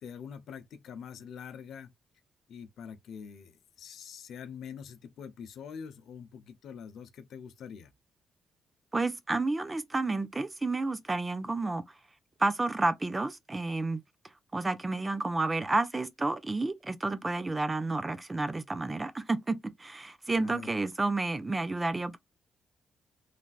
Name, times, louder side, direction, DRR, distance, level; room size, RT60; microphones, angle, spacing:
voice 1, 0.0-1.9 2.5-7.9 20.4-20.7, left 7 dB, 75° left, 0.6 m, -44 dB
voice 2, 8.9-11.8 12.4-14.0 14.5-22.2, right 2 dB, 20° right, 0.5 m, -30 dB
3.3 x 2.5 x 2.3 m
cardioid pair, 95°, 0 cm